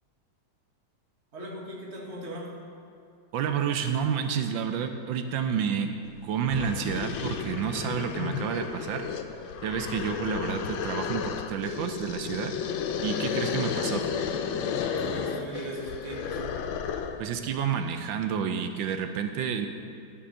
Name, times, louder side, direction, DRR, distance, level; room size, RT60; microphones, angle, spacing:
voice 1, 1.3-2.5 14.9-16.5, right 1 dB, 35° right, -3 dB, 1.7 m, -38 dB
voice 2, 3.3-5.9 6.2-9.0 9.6-12.5 13.0-14.1 17.2-19.7, right 7 dB, 80° right, 7 dB, 1.3 m, -29 dB
sound 1, 6.1-6.2 6.5-17.3, left 7 dB, 90° left, 1.4 m, -32 dB
11.0 x 5.5 x 6.4 m, 2.5 s
omnidirectional pair, 2.1 m